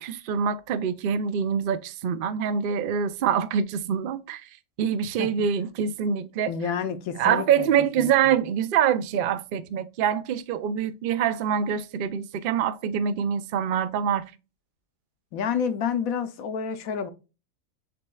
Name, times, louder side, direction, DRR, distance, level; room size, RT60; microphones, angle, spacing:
voice 1, 0.0-4.5 4.8-6.5 7.2-14.2, right 8 dB, 70° right, 0.5 m, -25 dB
voice 2, 6.5-7.7 8.0-8.3 15.3-17.1, left 7 dB, 70° left, 1.1 m, -29 dB
6.7 x 3.2 x 2.2 m
omnidirectional pair, 1.6 m